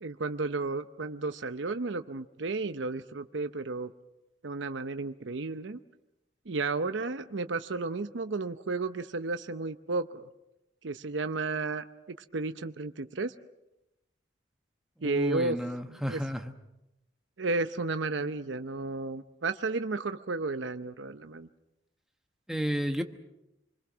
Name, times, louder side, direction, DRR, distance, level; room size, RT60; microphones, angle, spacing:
voice 1, 0.0-3.9 4.4-5.8 6.5-10.3 10.8-11.8 12.3-13.3 15.0-15.6 16.1-16.2 17.4-21.5, right 3 dB, 80° right, 9 dB, 0.7 m, -33 dB
voice 2, 15.0-16.5 22.5-23.0, equal, ahead, 5 dB, 1.1 m, -31 dB
27.5 x 21.5 x 6.2 m, 0.92 s
head